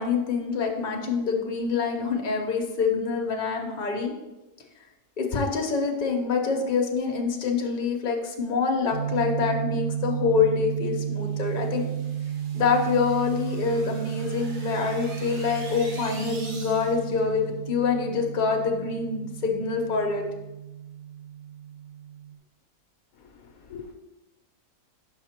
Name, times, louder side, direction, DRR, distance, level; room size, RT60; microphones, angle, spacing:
voice 1, 0.0-4.1 5.2-11.9 12.5-20.2, left 5 dB, 35° left, 2 dB, 0.8 m, -26 dB
sound 1, 8.9-22.4, right 10 dB, 65° right, 0.7 m, -33 dB
sound 2, 11.2-17.2, right 3 dB, 85° right, 1.7 m, -45 dB
voice 2, 23.1-23.9, left 6 dB, 70° left, 4 dB, 1.0 m, -44 dB
5.8 x 5.4 x 4.3 m, 1.0 s
omnidirectional pair, 1.7 m